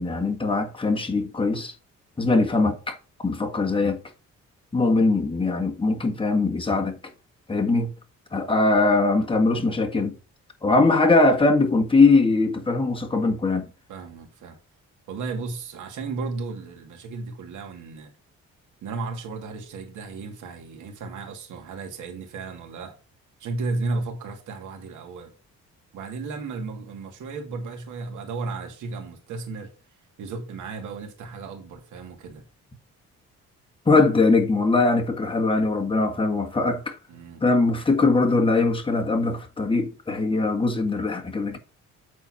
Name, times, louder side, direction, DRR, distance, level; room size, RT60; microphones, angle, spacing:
voice 1, 0.0-1.7 2.2-4.0 4.7-7.0 7.5-7.9 8.3-10.2 10.6-13.7 33.9-37.0 37.4-41.6, left 3 dB, 15° left, 1.7 m, -21 dB
voice 2, 13.9-14.6 15.1-18.1 18.8-23.0 23.4-25.3 25.9-29.7 30.2-32.4 37.1-37.4, right 3 dB, 75° right, 2.5 m, -34 dB
8.2 x 4.3 x 5.8 m
cardioid pair, 90°, 30 cm